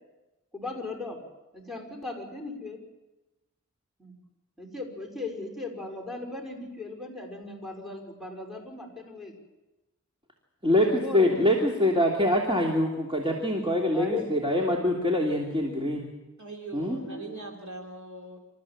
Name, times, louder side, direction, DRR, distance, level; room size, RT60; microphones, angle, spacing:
voice 1, 0.5-1.2 1.5-2.8 4.0-4.1 4.6-9.3 10.7-11.4 13.9-14.5 17.1-17.4, left 3 dB, ahead, 0 dB, 5.8 m, -37 dB
voice 2, 10.6-16.0 16.7-17.0, left 1 dB, 20° right, -2 dB, 3.1 m, -24 dB
voice 3, 16.4-18.4, right 2 dB, 70° right, 0 dB, 3.3 m, -41 dB
27.5 x 14.0 x 7.4 m, 1.0 s
wide cardioid pair, 50°, 30 cm